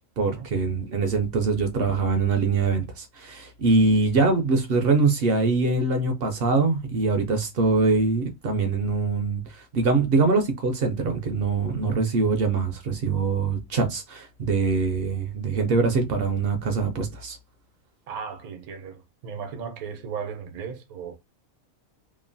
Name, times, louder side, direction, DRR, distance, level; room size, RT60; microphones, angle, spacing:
voice 1, 0.2-17.4, right 4 dB, 65° right, 0.6 m, -23 dB
voice 2, 18.1-21.1, right 6 dB, 90° right, 1.1 m, -36 dB
2.9 x 2.1 x 2.5 m
omnidirectional pair, 1.5 m